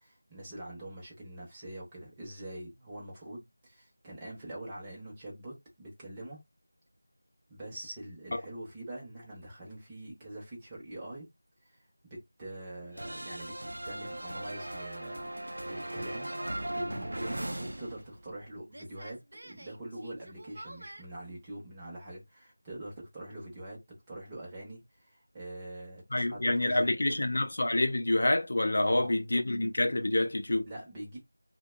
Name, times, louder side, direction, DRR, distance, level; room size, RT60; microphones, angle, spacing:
voice 1, 0.0-6.4 7.5-11.3 11.6-11.8 12.0-13.5 13.8-23.8 24.1-24.8 25.1-27.2 28.8-29.1 30.7-31.2, right 1 dB, 10° right, 0.7 m, -44 dB
sound 1, 13.0-18.4 18.7-21.0, right 1 dB, 65° right, 0.4 m, -39 dB
voice 2, 26.1-30.7, left 1 dB, 50° left, 0.4 m, -27 dB
2.7 x 2.1 x 2.2 m
figure-of-eight pair, 175°, 0 cm